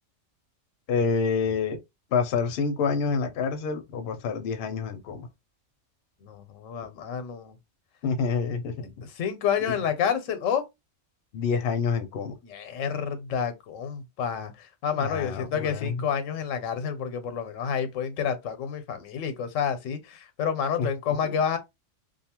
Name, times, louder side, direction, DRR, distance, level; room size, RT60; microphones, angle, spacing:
voice 1, 0.9-1.8 2.1-5.3 8.0-9.0 9.6-9.7 11.3-12.3 14.9-16.1 20.8-20.9 21.2-21.4, left 5 dB, 60° left, 0.7 m, -28 dB
voice 2, 6.2-7.6 9.0-10.6 12.4-21.6, left 7 dB, 90° left, 1.0 m, -29 dB
2.6 x 2.3 x 2.8 m
omnidirectional pair, 1.3 m